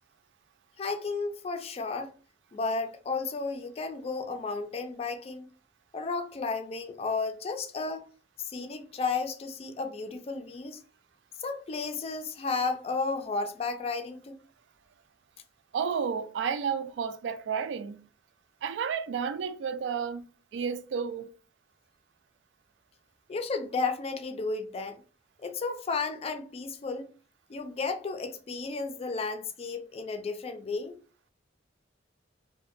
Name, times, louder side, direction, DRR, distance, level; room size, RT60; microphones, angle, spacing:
voice 1, 0.8-2.1 2.5-5.5 5.9-8.1 8.4-10.8 11.4-14.3 23.3-25.0 25.4-27.1 27.5-30.9, left 4 dB, 35° left, 0.4 m, -33 dB
voice 2, 15.7-18.0 18.6-20.3 20.5-21.3, right 6 dB, 80° right, 0.3 m, -31 dB
2.5 x 2.1 x 2.4 m
head